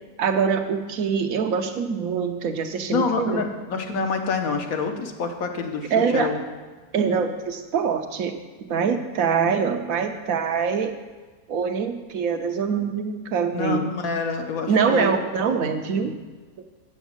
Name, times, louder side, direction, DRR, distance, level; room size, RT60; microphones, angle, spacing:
voice 1, 0.2-3.4 5.9-6.4 6.9-10.9 11.5-13.9 14.7-16.2, right 6 dB, 65° right, 7 dB, 1.2 m, -24 dB
voice 2, 2.9-6.4 13.5-15.1 15.5-15.6, left 4 dB, 70° left, 5 dB, 1.5 m, -27 dB
8.2 x 7.1 x 7.2 m, 1.4 s
omnidirectional pair, 1.6 m